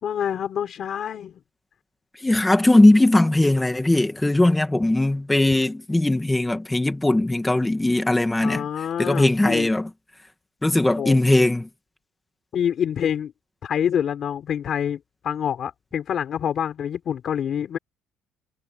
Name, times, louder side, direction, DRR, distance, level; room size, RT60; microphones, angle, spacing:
voice 1, 0.0-1.4 8.4-9.7 11.0-11.2 12.5-13.3 13.6-17.8, left 9 dB, 35° left, 5.6 m, -26 dB
voice 2, 2.2-8.6 9.0-9.9 10.6-11.7, left 1 dB, 5° left, 1.8 m, -19 dB
cardioid pair, 180°, 0 cm